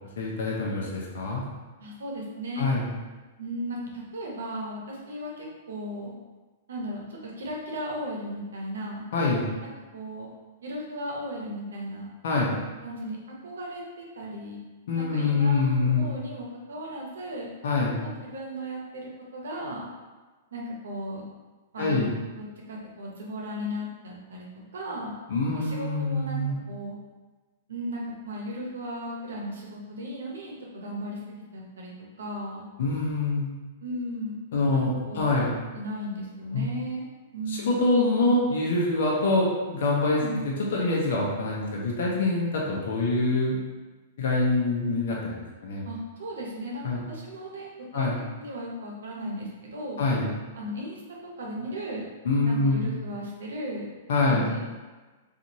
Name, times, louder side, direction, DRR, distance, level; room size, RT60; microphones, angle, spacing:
voice 1, 0.2-1.4 2.6-2.8 9.1-9.5 12.2-12.5 14.9-16.1 17.6-18.0 21.8-22.1 25.3-26.6 32.8-33.5 34.5-35.6 36.5-36.7 37.5-43.7 44.2-45.8 46.8-47.0 47.9-48.2 50.0-50.3 52.2-52.9 54.1-54.5, left 2 dB, 70° left, -3 dB, 0.7 m, -25 dB
voice 2, 1.8-2.7 3.4-6.1 6.7-9.1 9.6-10.3 10.6-12.0 12.8-13.2 13.4-14.6 15.0-17.5 18.0-19.9 20.5-21.2 21.7-22.1 22.4-24.5 24.7-25.2 25.5-26.4 26.7-26.9 27.7-31.9 32.2-32.7 33.8-34.4 34.7-35.4 35.7-37.0 37.3-37.8 40.2-40.5 45.8-48.1 48.4-50.0 50.5-51.0 51.4-52.1 52.4-53.9 54.3-54.8, equal, 85° right, -2 dB, 0.7 m, -36 dB
2.6 x 2.5 x 2.9 m, 1.3 s
hypercardioid pair, 135°, 0 cm